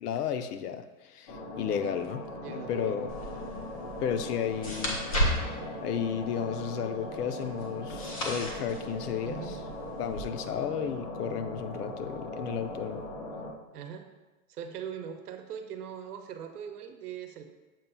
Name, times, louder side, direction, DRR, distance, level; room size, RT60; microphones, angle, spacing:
voice 1, 0.0-3.1 4.0-5.0 5.8-9.4 10.0-13.0, left 8 dB, 80° left, 9 dB, 0.7 m, -33 dB
sound 1, 1.3-13.5, left 1 dB, 45° left, 0.9 m, -40 dB
voice 2, 2.4-3.0 9.2-9.6 13.7-14.1 14.5-17.4, right 8 dB, 80° right, 6 dB, 0.9 m, -41 dB
sound 2, 3.1-10.2, equal, 25° left, 0.5 m, -35 dB
7.3 x 2.6 x 5.5 m, 1.1 s
supercardioid pair, 175°, 46 cm